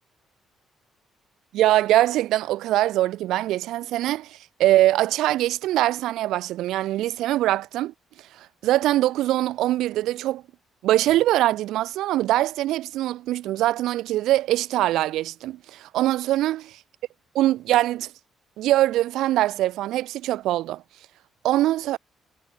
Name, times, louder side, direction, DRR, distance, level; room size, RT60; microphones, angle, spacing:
voice 1, 1.5-7.9 8.4-10.4 10.8-16.8 17.3-18.1 18.6-20.8 21.4-22.0, right 14 dB, 85° right, 1.0 m, -23 dB
cardioid pair, 90°, 0 cm